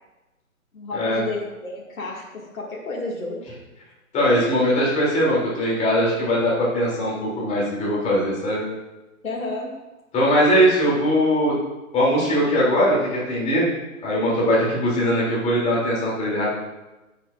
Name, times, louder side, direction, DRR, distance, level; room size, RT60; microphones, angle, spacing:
voice 1, 0.7-3.5 9.2-9.8, left 3 dB, 65° left, -5 dB, 2.0 m, -31 dB
voice 2, 4.1-8.6 10.1-11.5 11.9-13.7 14.0-16.5, equal, 15° left, -5 dB, 2.7 m, -20 dB
9.9 x 7.2 x 2.4 m, 1.1 s
figure-of-eight pair, 130°, 43 cm